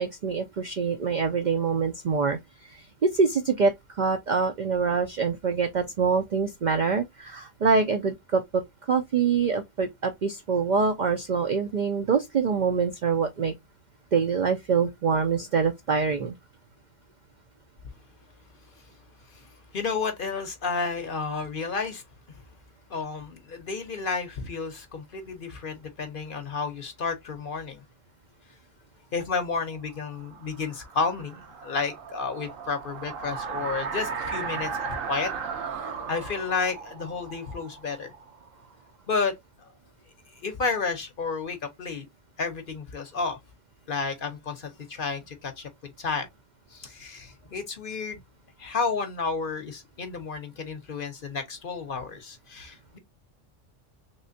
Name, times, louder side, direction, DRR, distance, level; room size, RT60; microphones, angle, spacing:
voice 1, 0.0-13.5 14.1-16.4, right 5 dB, 65° right, 0.4 m, -25 dB
voice 2, 19.7-22.0 22.3-22.4 22.9-27.8 29.1-38.1 39.1-39.3 39.6-39.7 40.4-42.1 42.4-43.4 43.9-45.7 46.0-46.3 46.7-48.2 48.6-53.0, left 4 dB, 50° left, 0.8 m, -31 dB
sound 1, 29.9-38.7, right 6 dB, 85° right, 1.2 m, -36 dB
3.3 x 3.1 x 2.6 m
omnidirectional pair, 1.3 m